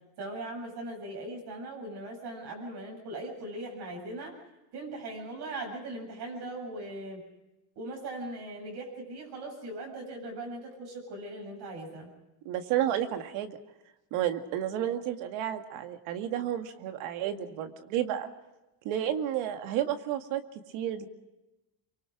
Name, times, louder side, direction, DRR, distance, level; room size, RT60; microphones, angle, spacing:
voice 1, 0.2-4.3 4.7-7.2 7.8-12.1, right 2 dB, 55° right, 0 dB, 8.0 m, -39 dB
voice 2, 12.5-13.6 14.1-18.3 18.8-20.4 20.7-21.1, right 11 dB, 75° right, 7 dB, 2.2 m, -31 dB
25.5 x 24.0 x 5.0 m, 0.99 s
cardioid pair, 150°, 49 cm